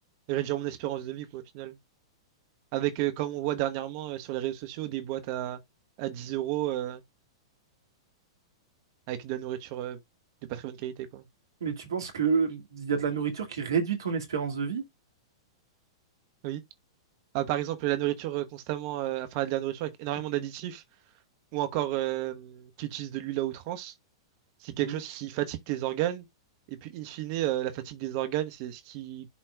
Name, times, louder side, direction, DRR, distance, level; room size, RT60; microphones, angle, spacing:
voice 1, 0.3-1.8 2.7-5.6 6.0-7.0 9.1-10.0 10.5-11.3 16.4-16.6 17.3-20.8 21.5-23.9 24.6-26.2 26.7-29.3, right 14 dB, 45° right, 1.1 m, -32 dB
voice 2, 11.6-14.8 24.8-25.0, right 6 dB, 65° right, 2.1 m, -29 dB
11.0 x 4.4 x 2.3 m
figure-of-eight pair, 100°, 2 cm